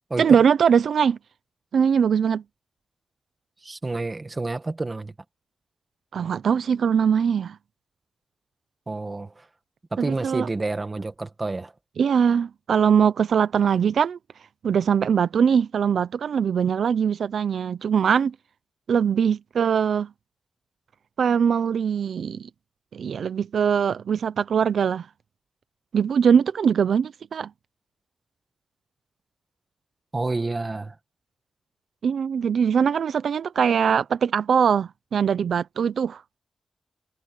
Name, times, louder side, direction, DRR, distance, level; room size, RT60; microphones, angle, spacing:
voice 1, 0.2-1.2 1.7-2.4 6.1-7.6 10.0-10.5 12.0-14.2 14.6-18.3 18.9-20.1 21.2-22.5 22.9-25.1 25.9-27.5 32.0-36.2, right 7 dB, 85° right, 0.5 m, -21 dB
voice 2, 3.6-5.1 8.9-9.5 9.9-11.7 30.1-31.0, right 3 dB, 25° right, 1.7 m, -29 dB
wide cardioid pair, 135°, 0 cm